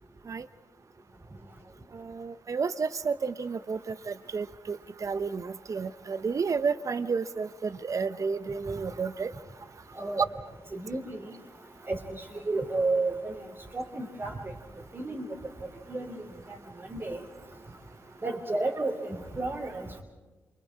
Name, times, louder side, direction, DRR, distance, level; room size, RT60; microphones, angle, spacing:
voice 1, 1.9-9.3, right 5 dB, 50° right, 13 dB, 1.0 m, -31 dB
voice 2, 10.7-11.4 11.9-13.4 13.7-14.5 14.9-15.3 15.9-16.2 16.5-16.6 16.9-17.2 18.2-20.0, right 2 dB, 35° right, -3 dB, 3.5 m, -32 dB
28.0 x 24.5 x 4.9 m, 1.2 s
supercardioid pair, 45°, 7 cm